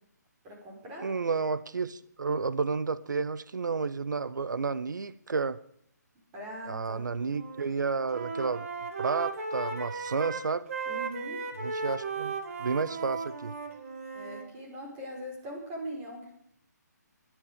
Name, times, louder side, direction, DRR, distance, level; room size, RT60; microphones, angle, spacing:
voice 1, 0.4-1.1 6.3-7.0 10.9-11.4 14.1-16.4, equal, 20° right, -1 dB, 5.2 m, -41 dB
voice 2, 1.0-5.6 6.7-8.7 9.0-10.7 11.6-13.5, right 4 dB, 90° right, 16 dB, 0.8 m, -31 dB
Wind instrument woodwind instrument, 7.2-7.6 7.9-14.5, right 4 dB, 50° right, 2.5 m, -36 dB
26.5 x 10.5 x 5.2 m, 0.70 s
hypercardioid pair, 165°, 10 cm